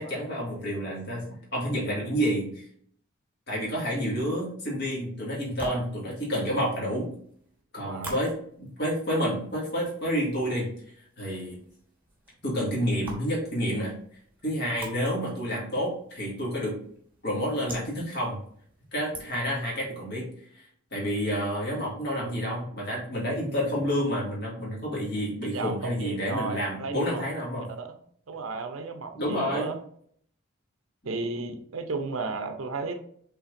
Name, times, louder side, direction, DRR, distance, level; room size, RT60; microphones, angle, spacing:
voice 1, 0.0-2.7 3.5-7.1 7.7-10.7 11.2-11.6 12.4-13.9 14.4-16.8 17.2-18.4 18.9-27.7 29.1-29.7, equal, 50° left, -5 dB, 2.0 m, -29 dB
sound 1, 5.3-19.7, right 1 dB, 10° right, 1.1 m, -46 dB
voice 2, 7.7-8.3 25.4-27.2 27.8-27.9 28.3-29.7 31.0-32.9, right 3 dB, 70° right, 6 dB, 0.6 m, -34 dB
5.6 x 3.6 x 2.5 m, 0.62 s
head